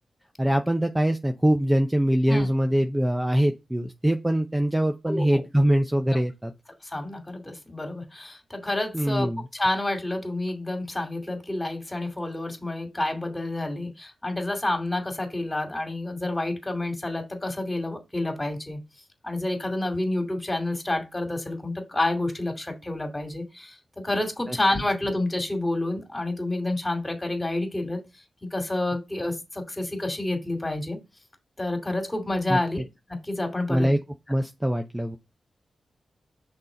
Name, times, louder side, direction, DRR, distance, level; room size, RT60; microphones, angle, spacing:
voice 1, 0.4-6.5 8.9-9.4 24.5-24.6 32.5-32.6 33.7-34.0 34.3-35.2, right 1 dB, 15° right, 0.6 m, -23 dB
voice 2, 5.1-5.4 6.1-6.2 6.8-9.3 9.5-18.8 19.2-23.8 24.0-28.0 28.4-31.0 31.6-32.8 33.1-33.9, left 2 dB, 20° left, 2.5 m, -29 dB
6.1 x 4.2 x 3.9 m
cardioid pair, 65°, 0 cm